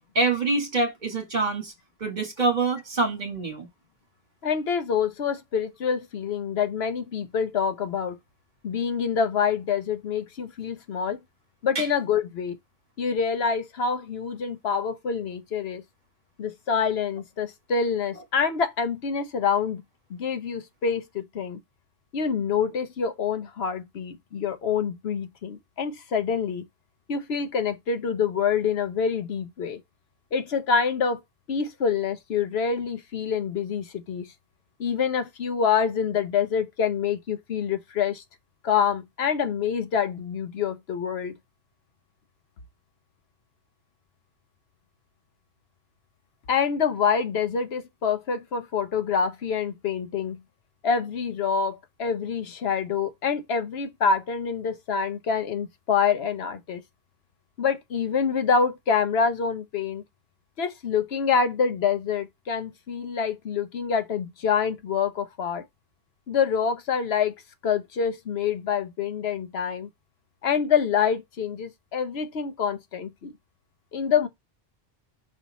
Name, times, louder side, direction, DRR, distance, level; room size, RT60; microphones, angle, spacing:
voice 1, 0.2-1.7 2.0-3.7 11.8-11.9, right 3 dB, 45° right, 1.9 m, -25 dB
voice 2, 4.4-8.2 8.6-11.2 11.6-12.6 13.0-15.8 16.4-19.8 20.1-21.6 22.1-26.6 27.1-29.8 30.3-31.2 31.5-34.2 34.8-38.2 38.6-41.3 46.5-50.4 50.8-56.8 57.6-60.0 60.6-65.6 66.3-67.3 67.6-69.9 70.4-73.3 73.9-74.3, left 6 dB, 80° left, 1.1 m, -26 dB
5.5 x 4.3 x 4.0 m
omnidirectional pair, 1.0 m